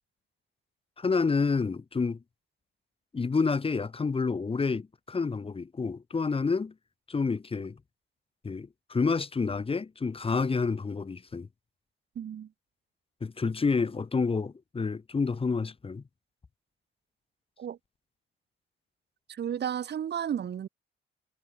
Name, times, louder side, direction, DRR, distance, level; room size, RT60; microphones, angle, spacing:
voice 1, 1.0-2.2 3.1-6.7 7.1-7.8 8.4-11.5 13.2-16.0, left 4 dB, 30° left, 1.7 m, -29 dB
voice 2, 12.1-12.5 17.6-17.8 19.3-20.7, right 9 dB, 60° right, 2.7 m, -33 dB
cardioid pair, 90°, 20 cm